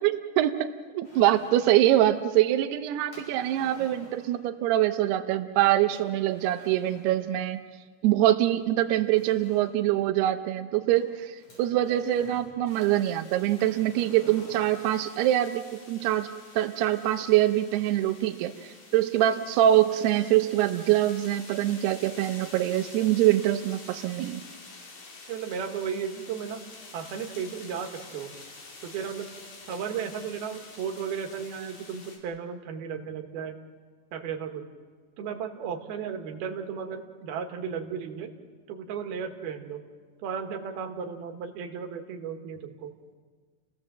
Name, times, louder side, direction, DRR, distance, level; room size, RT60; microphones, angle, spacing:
voice 1, 0.0-7.6 8.0-15.6 15.9-16.3 16.5-24.4, right 13 dB, 85° right, 8 dB, 2.3 m, -24 dB
sound 1, 1.0-2.0 3.1-4.4 5.9-7.2 8.3-8.4 8.9-9.8 10.9-12.6 13.6-14.9, left 1 dB, 30° left, 8.6 m, -50 dB
sound 2, 12.7-32.2, left 3 dB, 45° left, 4.6 m, -48 dB
voice 2, 25.3-26.6 26.9-28.3 28.8-29.3 29.7-33.5 34.1-34.7 35.2-38.3 38.7-39.8 40.2-42.9, right 7 dB, 65° right, 4 dB, 2.9 m, -34 dB
29.5 x 18.0 x 7.5 m, 1.6 s
omnidirectional pair, 5.8 m